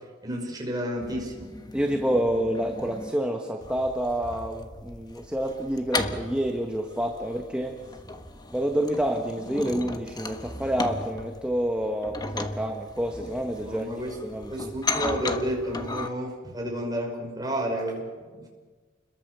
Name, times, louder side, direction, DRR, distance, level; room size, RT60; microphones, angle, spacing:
voice 1, 0.2-1.5 13.6-14.2 14.5-18.4, equal, 20° right, 1 dB, 5.9 m, -31 dB
sound 1, 1.0-3.1 3.6-16.1, left 3 dB, 20° left, 1.4 m, -36 dB
voice 2, 1.7-7.8 8.5-13.9 14.2-14.7, right 1 dB, 5° right, 2 dB, 1.5 m, -28 dB
29.5 x 22.0 x 7.0 m, 1.4 s
head